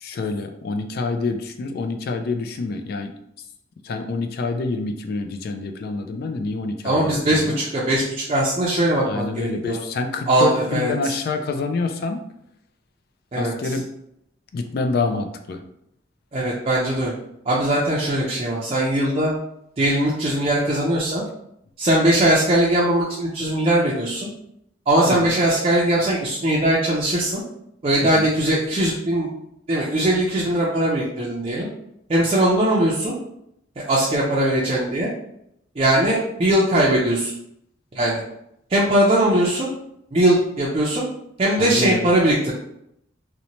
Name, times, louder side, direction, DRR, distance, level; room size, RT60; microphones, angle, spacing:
voice 1, 0.0-3.1 3.8-7.6 9.0-12.2 13.3-13.9 14.5-15.6 25.1-25.3 28.0-28.3 41.6-42.1, left 3 dB, 55° left, 6 dB, 0.3 m, -27 dB
voice 2, 6.8-9.8 10.3-10.9 13.3-13.5 16.3-17.1 17.5-19.3 19.8-21.2 21.8-24.3 24.9-27.4 27.8-29.3 29.7-31.7 32.1-33.1 33.9-35.1 35.8-37.3 37.9-38.2 38.7-39.7 40.1-41.1 41.4-42.5, right 1 dB, 30° right, -6 dB, 0.4 m, -20 dB
2.7 x 2.1 x 2.9 m, 0.77 s
head